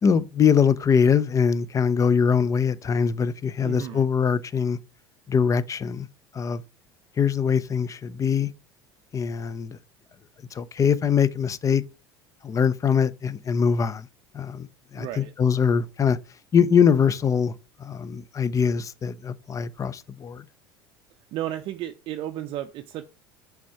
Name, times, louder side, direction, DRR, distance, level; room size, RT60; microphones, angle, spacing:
voice 1, 0.0-4.8 5.3-6.1 6.3-6.6 7.2-8.5 9.1-9.8 10.5-11.8 12.4-14.1 14.3-16.2 16.5-17.5 17.8-20.5, left 6 dB, 30° left, 0.5 m, -22 dB
voice 2, 3.6-4.0 14.9-15.3 21.3-23.0, right 12 dB, 50° right, 0.5 m, -33 dB
6.0 x 3.5 x 4.6 m
hypercardioid pair, 70°, 12 cm